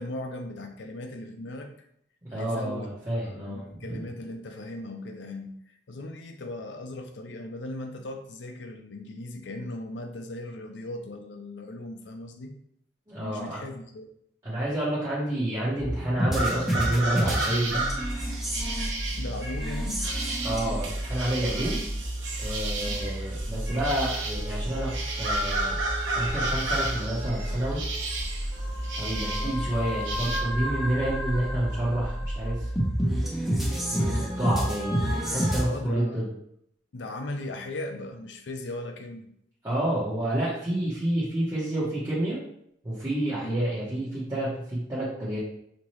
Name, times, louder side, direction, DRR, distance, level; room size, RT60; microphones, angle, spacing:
voice 1, 0.0-1.7 2.3-12.5 13.2-14.1 19.2-20.0 22.8-23.1 29.4-29.6 35.6-36.3 36.9-39.3 43.4-43.6, left 1 dB, 70° left, 5 dB, 0.6 m, -38 dB
voice 2, 2.3-3.6 3.9-4.0 13.1-13.6 14.4-17.8 20.4-21.8 22.4-25.8 26.1-27.8 29.0-32.5 33.7-36.3 39.6-42.4 42.8-45.4, right 1 dB, 20° right, -11 dB, 1.1 m, -29 dB
sound 1, 15.8-35.6, equal, ahead, 0.9 m, -30 dB
sound 2, 16.3-30.4, right 2 dB, 85° right, 0.9 m, -33 dB
5.3 x 2.9 x 3.1 m, 0.71 s
head